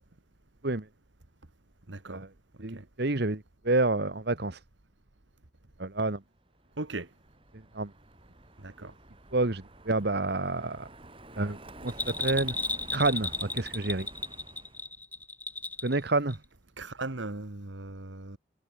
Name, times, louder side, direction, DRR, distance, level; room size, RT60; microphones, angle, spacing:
voice 1, 1.9-2.3 2.7-2.9 6.8-7.1 8.6-8.9 16.8-18.4, right 2 dB, 70° right, 1.8 m, -38 dB
voice 2, 2.6-4.6 5.8-6.2 7.7-7.9 9.3-10.9 11.4-12.5 12.9-14.1 15.8-16.4, right 2 dB, 55° right, 1.4 m, -29 dB
Car passing by, 6.4-14.9, right 1 dB, 30° right, 7.4 m, -49 dB
Bell, 11.9-16.0 16.3-16.4, left 2 dB, 10° left, 0.9 m, -34 dB
head